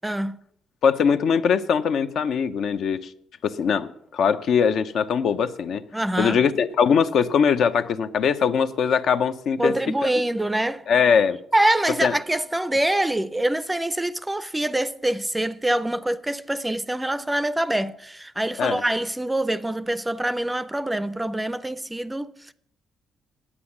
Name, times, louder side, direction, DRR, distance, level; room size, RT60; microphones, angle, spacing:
voice 1, 0.0-0.4 5.9-6.4 9.6-10.8 11.5-22.5, right 1 dB, 10° right, 0.5 m, -25 dB
voice 2, 0.8-3.1 3.4-5.8 6.2-9.7 10.9-11.4 12.0-12.1 18.6-18.8, left 6 dB, 65° left, 0.7 m, -21 dB
9.8 x 8.7 x 7.2 m
cardioid pair, 105°, 0 cm